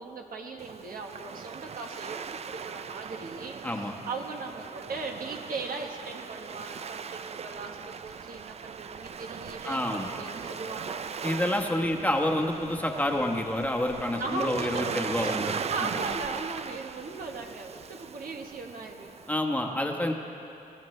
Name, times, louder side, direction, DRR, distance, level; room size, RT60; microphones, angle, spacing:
voice 1, 0.0-11.0 14.2-14.9 15.2-15.3 15.7-19.1, right 3 dB, 70° right, 2 dB, 1.3 m, -38 dB
Waves surf, 0.6-19.4, right 6 dB, 45° right, 0.4 m, -39 dB
voice 2, 3.6-3.9 9.6-10.1 11.2-15.5 15.8-16.0 19.3-20.1, left 1 dB, 10° left, 2 dB, 1.1 m, -28 dB
23.5 x 14.5 x 3.2 m, 2.8 s
wide cardioid pair, 115°, 15 cm